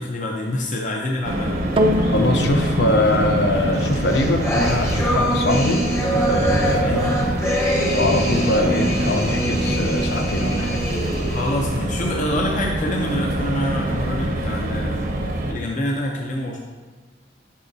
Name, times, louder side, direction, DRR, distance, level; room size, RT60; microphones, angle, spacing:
voice 1, 0.0-1.7 6.8-7.1 11.3-15.0 15.5-16.6, left 1 dB, 45° left, -1 dB, 0.7 m, -26 dB
sound 1, 1.2-15.5, right 1 dB, 55° right, 0.8 m, -24 dB
sound 2, 1.8-10.3 11.0-11.1, equal, 30° right, 0.4 m, -31 dB
voice 2, 2.0-7.3 7.8-10.8, left 1 dB, 80° left, 4 dB, 0.8 m, -22 dB
sound 3, 3.8-11.7, equal, 15° left, 0.9 m, -25 dB
8.5 x 5.8 x 2.7 m, 1.4 s
head